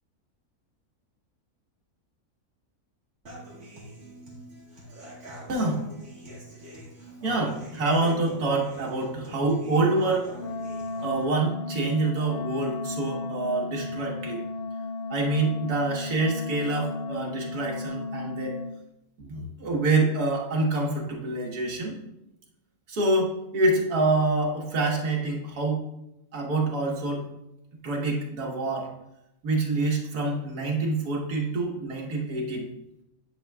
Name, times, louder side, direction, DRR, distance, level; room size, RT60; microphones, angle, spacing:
Human voice / Acoustic guitar, 3.3-11.2, equal, 50° right, 2.3 m, -44 dB
voice 1, 7.2-10.3 11.0-14.4 15.1-18.5 19.2-22.0 22.9-25.8 26.3-27.3 27.8-28.9 29.4-32.7, right 2 dB, 85° right, -1 dB, 1.8 m, -26 dB
Wind instrument woodwind instrument, 10.3-18.8, left 3 dB, 65° left, 0.5 m, -34 dB
11.0 x 6.2 x 2.3 m, 0.85 s
omnidirectional pair, 1.6 m